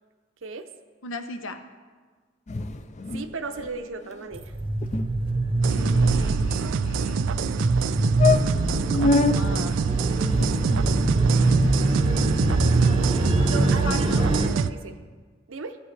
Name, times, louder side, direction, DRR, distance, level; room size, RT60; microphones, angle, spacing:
voice 1, 1.0-1.6 5.7-7.3 8.9-9.8 12.8-14.2, left 2 dB, 85° left, 7 dB, 0.8 m, -37 dB
sound 1, 2.5-3.3 3.6-3.7 4.0-4.2 4.5-4.6 4.8-5.1 5.7-6.7 7.4-7.5 7.8-7.9 8.2-9.4 10.2-11.2, left 4 dB, 35° left, 0.4 m, -26 dB
voice 2, 3.1-4.6 12.0-12.7 13.4-15.0 15.5-15.8, right 4 dB, 85° right, 8 dB, 0.7 m, -36 dB
sound 2, 4.3-14.5, right 2 dB, 25° right, 0.8 m, -24 dB
sound 3, 5.6-14.7, right 6 dB, 70° right, 0.3 m, -26 dB
16.0 x 8.4 x 3.3 m, 1.5 s
head